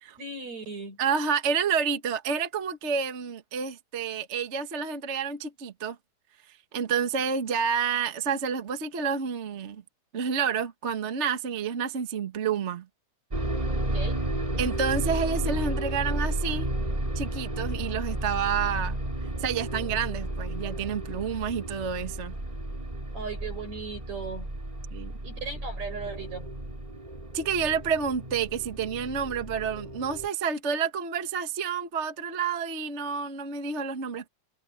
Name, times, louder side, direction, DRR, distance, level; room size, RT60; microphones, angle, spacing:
voice 1, 0.2-1.0 13.8-14.2 23.1-24.5 25.2-26.5, right 4 dB, 65° right, 9.2 m, -37 dB
voice 2, 1.0-6.0 6.7-9.8 10.1-12.9 14.6-16.7 17.1-19.0 19.4-22.3 24.9-25.1 27.3-34.3, right 6 dB, 35° right, 1.1 m, -29 dB
sound 1, 13.3-30.3, right 1 dB, 10° right, 3.5 m, -32 dB
omnidirectional pair, 3.4 m